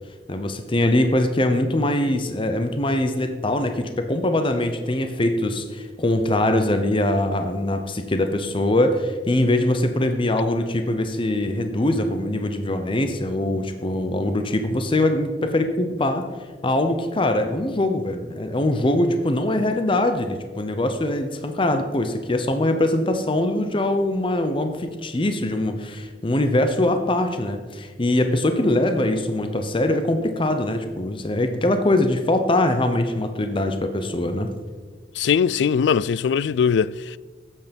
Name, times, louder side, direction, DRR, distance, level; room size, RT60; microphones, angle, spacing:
voice 1, 0.3-16.3 16.6-34.5, left 1 dB, 30° left, 0.8 m, -22 dB
voice 2, 35.2-37.2, left 7 dB, 75° left, 0.3 m, -20 dB
12.5 x 8.3 x 5.3 m
head